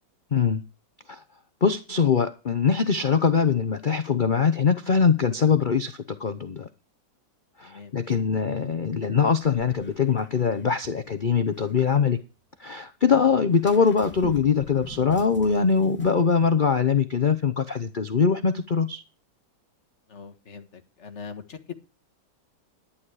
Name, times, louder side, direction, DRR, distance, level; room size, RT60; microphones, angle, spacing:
voice 1, 0.3-0.6 1.1-1.2 1.6-6.7 7.6-12.2 12.6-19.0, left 6 dB, 65° left, 0.4 m, -22 dB
voice 2, 7.6-7.9 20.1-21.7, left 6 dB, 40° left, 1.7 m, -41 dB
sound 1, 9.4-11.9 13.5-16.3 16.7-16.8, left 1 dB, 5° left, 2.2 m, -44 dB
11.5 x 10.5 x 4.9 m
omnidirectional pair, 2.1 m